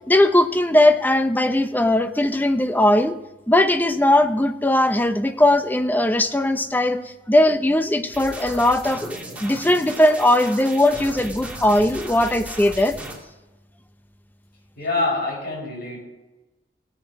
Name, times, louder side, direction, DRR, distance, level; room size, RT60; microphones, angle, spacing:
voice 1, 0.1-3.1 3.5-7.0 7.3-12.9, left 1 dB, 10° left, 9 dB, 0.7 m, -19 dB
sound 1, 8.1-13.1, right 1 dB, 10° right, 2.7 m, -36 dB
voice 2, 14.8-16.0, left 2 dB, 60° left, -2 dB, 5.6 m, -25 dB
18.0 x 8.3 x 4.7 m, 1.1 s
head